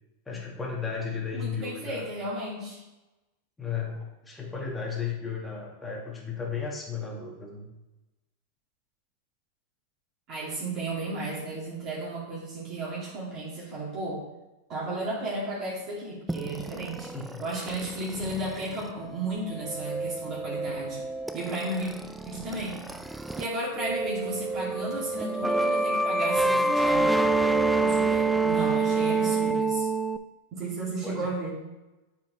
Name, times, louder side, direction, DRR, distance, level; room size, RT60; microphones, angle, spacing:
voice 1, 0.3-2.1 3.6-7.7 17.1-17.4 31.0-31.3, left 6 dB, 10° left, -3 dB, 1.5 m, -34 dB
voice 2, 1.3-2.8 10.3-14.2 14.7-17.1 17.4-21.0 21.3-21.9 22.2-22.9 23.4-27.1 27.8-29.9 30.5-31.5, right 2 dB, 40° right, -6 dB, 2.3 m, -34 dB
sound 1, 16.3-23.5 23.7-30.2, right 3 dB, 5° right, 0.3 m, -27 dB
8.2 x 4.4 x 3.1 m, 1.0 s
hypercardioid pair, 125°, 0 cm